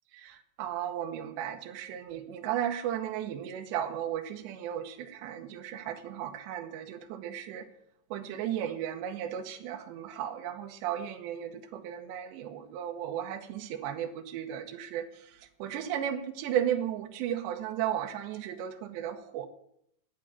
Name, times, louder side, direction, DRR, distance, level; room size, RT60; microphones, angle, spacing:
voice 1, 0.1-7.7 8.1-15.3 15.6-19.5, right 10 dB, 75° right, 4 dB, 3.3 m, -35 dB
11.5 x 9.1 x 8.8 m, 0.72 s
omnidirectional pair, 5.2 m